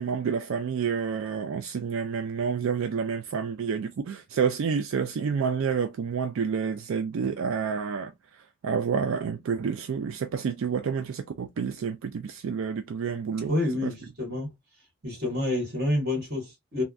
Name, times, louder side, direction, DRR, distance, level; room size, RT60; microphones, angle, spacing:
voice 1, 0.0-13.6 13.8-13.9, right 6 dB, 75° right, 0.3 m, -29 dB
voice 2, 13.3-14.5 15.0-16.8, left 1 dB, 50° right, 1.7 m, -28 dB
3.4 x 2.2 x 2.4 m
head